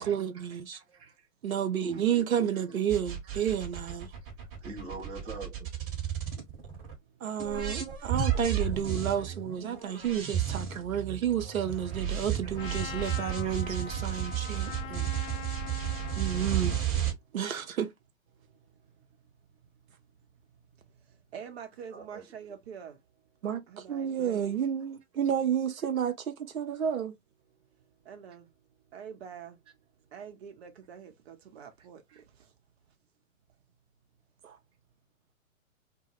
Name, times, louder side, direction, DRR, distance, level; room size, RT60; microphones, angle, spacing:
voice 1, 0.0-0.8 1.4-4.1 7.2-15.3 16.2-16.7 17.3-17.9 23.4-27.2 34.4-34.6, right 9 dB, 85° right, 0.6 m, -31 dB
voice 2, 0.7-1.3 1.8-2.8 3.8-4.0 4.4-5.6 12.4-12.5 13.4-13.5 14.6-14.7 15.1-15.5 16.1-16.6 21.9-22.2 32.1-32.2, right 3 dB, 15° right, 0.7 m, -46 dB
sound 1, 2.9-6.9 7.4-17.1, right 9 dB, 30° right, 1.1 m, -33 dB
voice 3, 4.4-4.7 6.1-7.3 15.8-16.2 17.2-17.4 18.3-23.0 23.7-24.4 27.6-29.6 30.1-32.6, right 7 dB, 50° right, 0.8 m, -48 dB
Trumpet, 12.6-16.9, left 8 dB, 40° left, 0.6 m, -42 dB
2.1 x 2.0 x 2.9 m
figure-of-eight pair, 115°, 41 cm